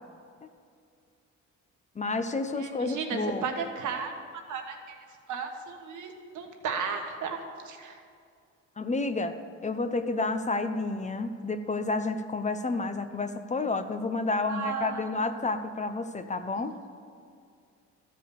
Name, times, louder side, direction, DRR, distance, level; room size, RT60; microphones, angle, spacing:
voice 1, 2.0-3.5 8.8-9.3 9.6-16.8, left 3 dB, 25° left, 9 dB, 0.6 m, -30 dB
voice 2, 2.6-4.9 5.3-8.0 14.5-15.1, right 5 dB, 75° right, 4 dB, 1.4 m, -34 dB
13.0 x 5.1 x 6.9 m, 2.3 s
cardioid pair, 90°, 30 cm